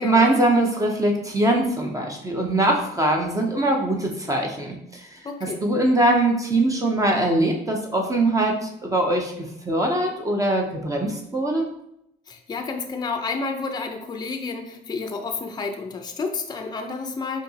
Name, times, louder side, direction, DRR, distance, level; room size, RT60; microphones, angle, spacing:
voice 1, 0.0-5.0 5.6-8.5 8.8-9.3 9.7-11.7, right 1 dB, 20° right, 1 dB, 0.7 m, -22 dB
voice 2, 5.2-5.6 12.3-17.4, left 4 dB, 25° left, 5 dB, 0.5 m, -30 dB
5.0 x 2.8 x 2.8 m, 0.78 s
cardioid pair, 110°, 17 cm